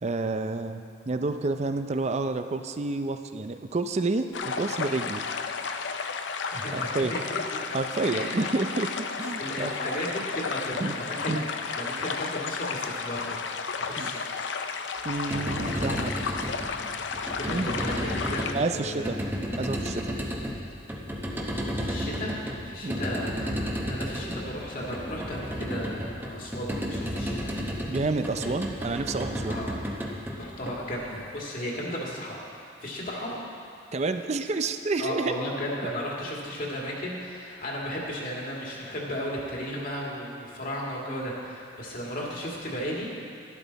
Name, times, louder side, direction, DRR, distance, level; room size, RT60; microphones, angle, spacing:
voice 1, 0.0-5.3 6.7-7.2 7.7-9.8 10.8-11.0 11.3-11.5 13.9-14.2 14.5-14.6 15.0-16.1 17.5-17.7 18.5-19.2 19.6-20.2 22.8-23.0 27.9-29.6 33.9-35.4, right 3 dB, 35° right, 8 dB, 0.5 m, -29 dB
sound 1, 4.3-18.5, left 5 dB, 75° left, 0.6 m, -33 dB
voice 2, 6.5-7.4 8.1-8.4 9.4-11.5 11.7-13.4 13.8-14.3 17.4-19.2 21.7-27.5 28.4-28.5 29.5-29.8 30.3-33.4 35.0-43.1, equal, 50° left, -3 dB, 2.0 m, -35 dB
sound 2, 15.1-31.3, equal, 10° right, 0.9 m, -33 dB
12.0 x 11.5 x 4.0 m, 2.4 s
head